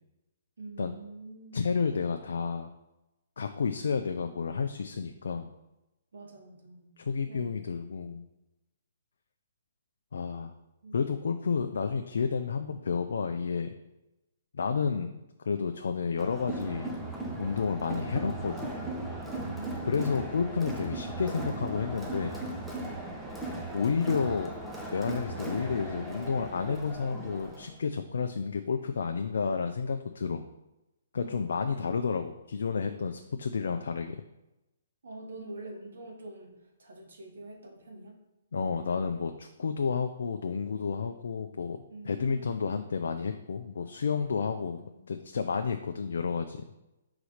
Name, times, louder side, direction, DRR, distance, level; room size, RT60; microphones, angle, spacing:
voice 1, 0.6-1.6 6.1-7.8 10.8-11.1 19.4-19.9 31.2-32.2 35.0-38.2 41.9-42.5 42.8-43.0 44.6-45.4, right 2 dB, 80° right, 2 dB, 1.4 m, -46 dB
voice 2, 1.5-2.7 3.4-5.5 7.0-8.3 10.1-10.5 10.9-13.7 14.5-16.9 17.4-18.7 19.9-22.4 23.7-24.5 24.9-30.4 31.1-34.2 38.5-41.8 42.0-46.6, left 5 dB, 75° left, 6 dB, 0.4 m, -31 dB
Crowd, 16.2-27.7, right 2 dB, 5° right, 0.8 m, -37 dB
4.9 x 4.0 x 4.9 m, 0.96 s
hypercardioid pair, 145°, 0 cm